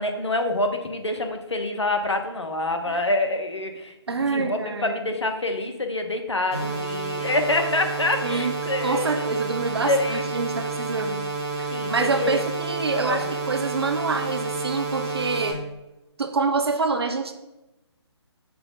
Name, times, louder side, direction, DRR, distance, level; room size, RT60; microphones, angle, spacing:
voice 1, 0.0-9.3 9.9-10.2 11.7-12.4 12.9-13.4, left 2 dB, 80° left, 5 dB, 1.0 m, -26 dB
voice 2, 4.1-5.1 8.2-8.5 8.8-11.2 11.6-15.6 16.2-17.3, right 4 dB, 65° right, 7 dB, 0.8 m, -26 dB
sound 1, 6.5-15.5, right 3 dB, 35° right, 1.5 m, -30 dB
6.0 x 3.2 x 5.4 m, 0.99 s
figure-of-eight pair, 145°, 14 cm